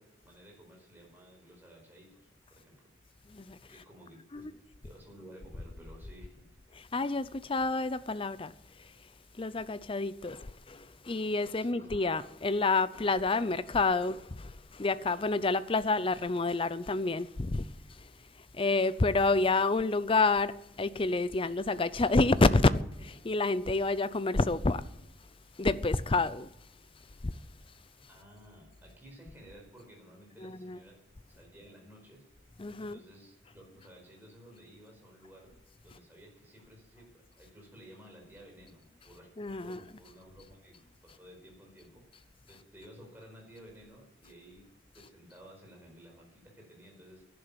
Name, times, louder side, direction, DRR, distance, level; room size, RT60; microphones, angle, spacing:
voice 1, 0.0-2.9 3.7-4.5 4.8-6.5 11.6-11.9 28.1-31.0 31.3-32.3 32.8-35.5 35.8-39.3 39.6-47.3, equal, 10° right, 5.0 m, -54 dB
voice 2, 3.3-3.8 4.3-4.5 6.7-9.1 9.3-24.9 25.5-26.5 27.2-27.4 30.4-30.8 32.6-33.0 35.9-36.0 39.4-39.8 42.5-42.6 45.0-45.1, left 3 dB, 25° left, 0.5 m, -29 dB
12.0 x 11.0 x 8.9 m
head